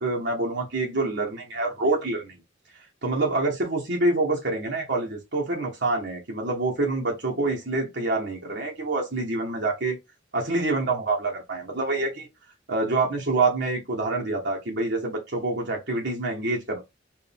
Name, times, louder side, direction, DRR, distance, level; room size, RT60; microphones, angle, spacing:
voice 1, 0.0-2.3 3.0-10.0 10.3-12.3 12.7-16.8, right 2 dB, 60° right, 1.2 m, -26 dB
4.7 x 2.6 x 3.4 m
head